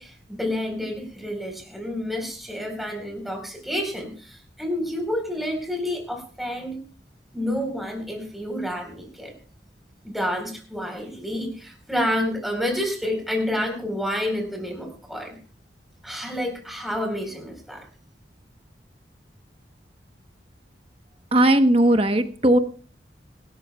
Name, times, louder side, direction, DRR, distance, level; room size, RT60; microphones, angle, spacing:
voice 1, 0.0-6.8 7.3-9.3 10.0-15.4 16.0-17.8, left 1 dB, ahead, 1 dB, 4.2 m, -29 dB
voice 2, 21.3-22.6, right 1 dB, 30° right, 8 dB, 1.1 m, -17 dB
26.5 x 12.5 x 2.3 m, 0.39 s
head